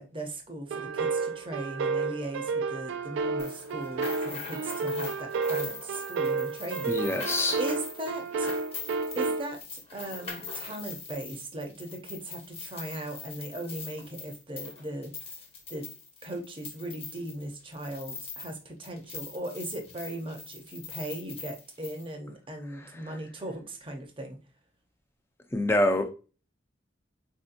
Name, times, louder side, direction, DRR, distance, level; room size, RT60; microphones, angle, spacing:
voice 1, 0.0-7.2 7.5-8.5 9.2-15.1 15.7-15.9 16.2-24.4, right 1 dB, 25° right, 0.6 m, -38 dB
sound 1, 0.7-9.4, right 4 dB, 90° right, 0.3 m, -31 dB
sound 2, 3.4-18.6 18.8-22.1, left 4 dB, 30° left, 0.8 m, -42 dB
voice 2, 6.9-7.6 25.5-26.1, left 1 dB, 15° left, 0.4 m, -25 dB
4.3 x 2.7 x 2.5 m
head